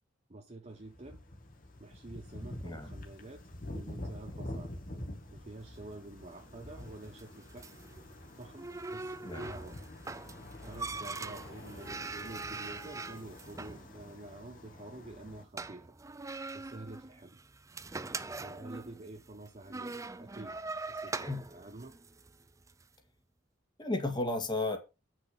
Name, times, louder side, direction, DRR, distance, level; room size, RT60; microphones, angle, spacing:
voice 1, 0.3-1.2 1.8-3.4 3.7-4.8 5.3-7.7 8.4-9.9 10.6-15.9 16.5-17.4 18.4-20.6 20.9-21.9, right 2 dB, 35° right, 1.0 m, -48 dB
sound 1, 0.7-15.4, left 1 dB, 45° left, 2.0 m, -47 dB
sound 2, 5.6-22.9, right 3 dB, 15° right, 0.5 m, -43 dB
voice 2, 21.1-21.5 23.8-24.8, left 2 dB, 25° left, 2.0 m, -34 dB
8.4 x 6.2 x 5.4 m
head